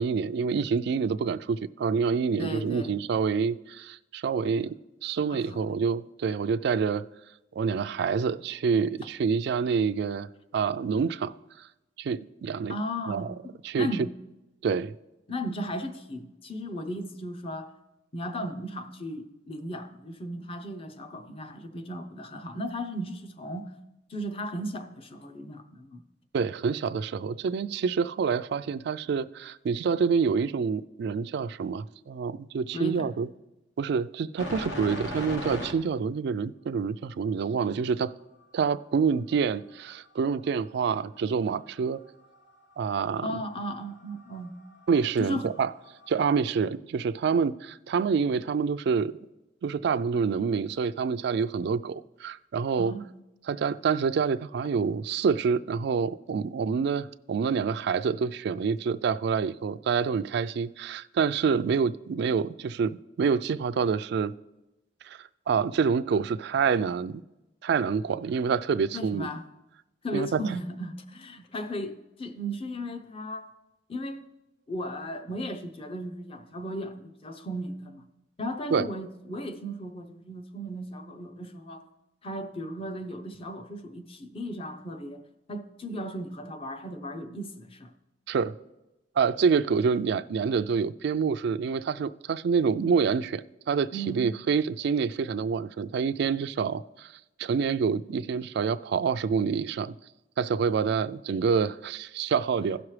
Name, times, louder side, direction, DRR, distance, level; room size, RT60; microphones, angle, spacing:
voice 1, 0.0-4.8 5.0-7.0 7.6-10.3 10.5-11.3 12.0-12.8 13.1-13.3 13.6-14.1 14.6-14.9 26.3-33.3 33.8-38.1 38.5-42.0 42.8-43.3 44.9-45.7 46.1-49.2 49.6-52.9 53.4-64.3 65.0-65.2 65.5-67.2 67.6-69.3 70.1-70.6 78.7-78.9 88.3-88.5 89.2-93.4 93.7-97.1 97.4-99.9 100.4-102.8, right 5 dB, 60° right, 0.3 m, -27 dB
voice 2, 2.4-2.9 5.3-5.6 12.7-14.1 15.3-17.7 18.1-23.7 24.1-26.0 32.7-33.1 43.2-44.5 45.2-45.5 52.8-53.1 68.9-69.5 70.0-73.5 73.9-74.2 74.7-78.1 78.4-81.8 82.2-85.2 85.5-87.9 93.9-94.3, equal, 30° left, 0.6 m, -36 dB
sound 1, 34.4-35.7 38.6-38.7 40.5-40.6 40.9-42.8 43.2-46.4, equal, 65° left, 1.1 m, -39 dB
16.5 x 6.0 x 3.2 m
head